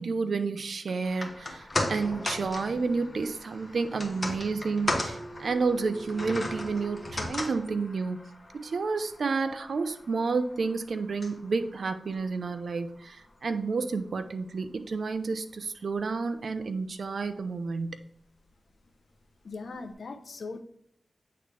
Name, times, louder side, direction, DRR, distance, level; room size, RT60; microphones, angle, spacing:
voice 1, 0.0-8.2 8.5-18.0, right 4 dB, 70° right, 10 dB, 0.6 m, -30 dB
sound 1, 1.0-13.4 13.7-13.8, left 1 dB, 30° left, 1.4 m, -37 dB
voice 2, 19.4-20.6, left 3 dB, 70° left, 6 dB, 0.8 m, -39 dB
8.7 x 3.9 x 3.4 m, 0.69 s
cardioid pair, 70°, 0 cm